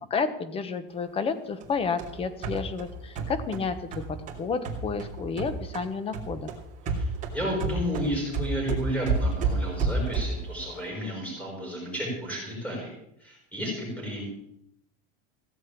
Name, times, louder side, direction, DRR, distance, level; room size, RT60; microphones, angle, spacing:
voice 1, 0.1-6.5, left 5 dB, 20° left, 12 dB, 1.1 m, -31 dB
sound 1, 1.6-5.9 6.1-10.5, right 3 dB, 25° right, 2.9 m, -30 dB
voice 2, 6.9-12.9 13.2-14.2, equal, 5° left, -2 dB, 6.4 m, -32 dB
16.5 x 7.7 x 8.7 m, 0.77 s
supercardioid pair, 165°, 29 cm